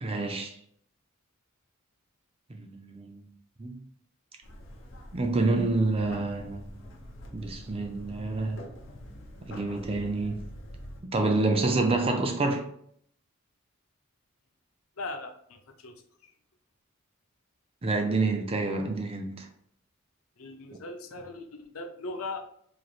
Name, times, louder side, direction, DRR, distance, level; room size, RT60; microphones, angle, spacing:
voice 1, 0.0-0.5 2.5-3.2 3.6-3.8 5.1-6.8 7.3-8.6 9.4-10.4 11.0-12.6 17.8-19.5, right 3 dB, 25° right, 0.5 m, -28 dB
sound 1, 4.4-11.0, equal, 65° left, 0.8 m, -45 dB
voice 2, 15.0-15.9 20.4-22.4, left 2 dB, 85° left, 0.6 m, -39 dB
4.0 x 3.2 x 2.4 m
head